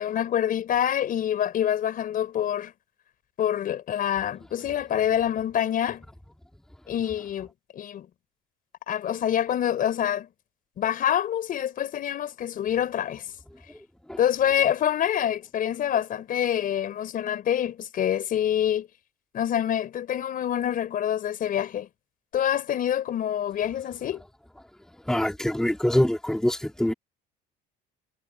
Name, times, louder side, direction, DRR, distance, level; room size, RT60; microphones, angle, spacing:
voice 1, 0.0-2.7 3.4-6.0 6.9-7.5 7.7-8.1 8.9-10.3 10.8-13.2 14.2-18.9 19.3-21.9 22.3-24.2, left 10 dB, 45° left, 5.1 m, -26 dB
voice 2, 25.1-26.9, left 1 dB, 5° left, 2.2 m, -24 dB
cardioid pair, 140°, 20 cm